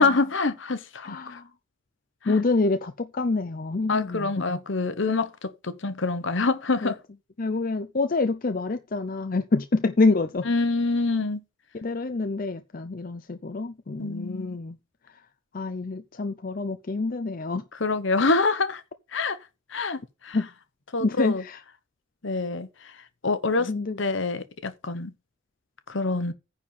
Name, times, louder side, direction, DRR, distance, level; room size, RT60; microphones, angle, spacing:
voice 1, 0.0-1.4 2.2-2.4 3.9-7.0 10.4-11.4 14.0-14.6 17.7-18.8 19.1-19.4 19.7-20.4 20.9-21.4 22.2-22.7 23.2-23.7 24.0-25.1 25.9-26.3, left 3 dB, 60° left, 1.0 m, -26 dB
voice 2, 1.0-1.4 2.3-4.6 6.8-6.9 7.4-10.5 11.7-14.8 15.5-17.6 20.3-20.5 21.0-21.6 23.6-24.0, left 3 dB, 40° left, 0.5 m, -27 dB
9.8 x 4.3 x 7.1 m
head